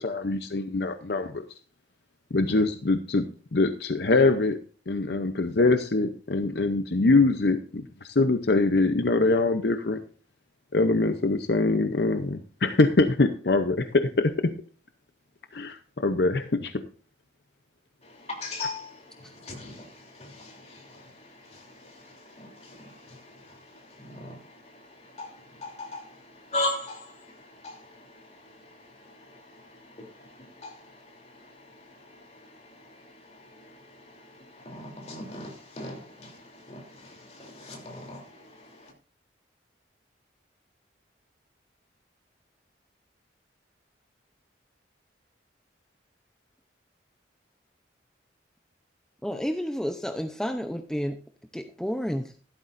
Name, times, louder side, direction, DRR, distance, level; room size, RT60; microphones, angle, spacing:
voice 1, 0.0-1.4 2.3-3.2 3.5-4.6 4.9-10.0 10.7-14.5 15.5-16.8, left 3 dB, 60° left, 0.7 m, -23 dB
voice 2, 18.0-38.9, left 2 dB, 35° left, 3.3 m, -40 dB
voice 3, 49.2-51.2 51.5-52.3, equal, 5° left, 0.6 m, -30 dB
15.0 x 12.5 x 2.6 m
head